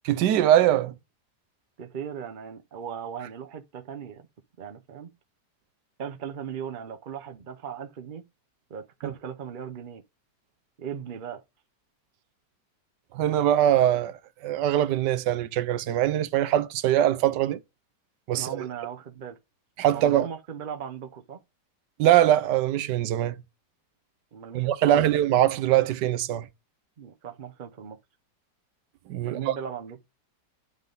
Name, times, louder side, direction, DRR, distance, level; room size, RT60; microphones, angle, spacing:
voice 1, 0.1-0.9 13.1-14.2 14.4-17.6 18.3-18.7 19.8-20.3 22.0-23.4 24.5-26.5 29.1-29.5, right 12 dB, 80° right, 1.3 m, -22 dB
voice 2, 1.8-4.3 4.6-5.1 6.0-8.2 8.7-10.0 10.8-11.4 18.4-19.4 19.9-21.4 24.3-25.3 27.0-28.0 29.2-30.0, right 8 dB, 50° right, 0.6 m, -38 dB
9.5 x 3.6 x 3.9 m
omnidirectional pair, 1.8 m